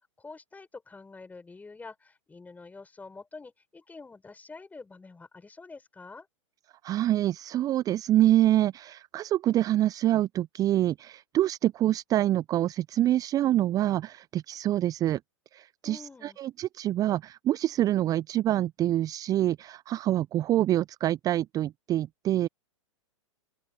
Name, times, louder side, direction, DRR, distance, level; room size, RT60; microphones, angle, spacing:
voice 1, 0.0-6.3 15.8-16.4, left 3 dB, 10° left, 6.7 m, -47 dB
voice 2, 6.8-15.2 15.5-22.5, right 13 dB, 20° right, 0.5 m, -26 dB
open air
figure-of-eight pair, 105°, 16 cm